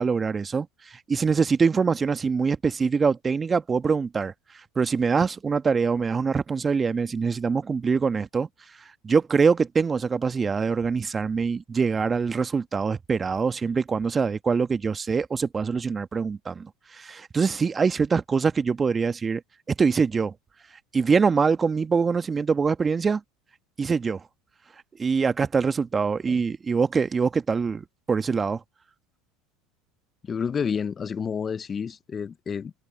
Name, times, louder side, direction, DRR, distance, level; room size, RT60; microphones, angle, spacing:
voice 1, 0.0-4.3 4.7-8.5 9.0-19.4 19.8-20.3 20.9-23.2 23.8-24.2 25.0-28.6, right 5 dB, 25° right, 1.5 m, -24 dB
voice 2, 30.2-32.7, left 6 dB, 30° left, 0.9 m, -29 dB
hypercardioid pair, 80°, 0 cm